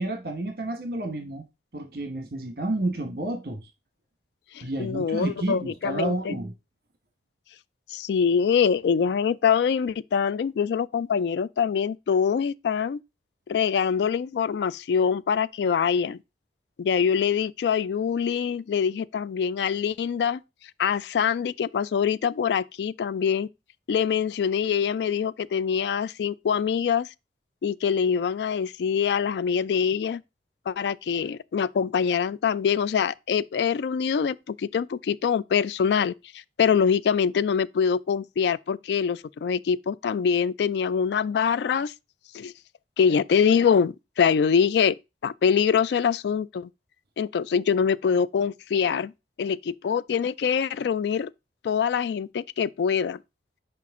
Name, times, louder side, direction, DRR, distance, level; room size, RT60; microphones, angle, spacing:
voice 1, 0.0-1.5 1.7-3.6 4.6-6.5, right 2 dB, 60° right, 1.2 m, -30 dB
voice 2, 4.5-6.4 7.9-13.0 13.5-16.2 16.8-20.4 20.8-23.5 23.9-27.1 27.6-30.2 30.7-41.9 42.3-42.5 43.0-45.0 45.2-46.7 47.2-49.1 49.4-51.3 51.6-53.2, left 7 dB, 75° left, 0.3 m, -24 dB
5.9 x 5.0 x 3.6 m
head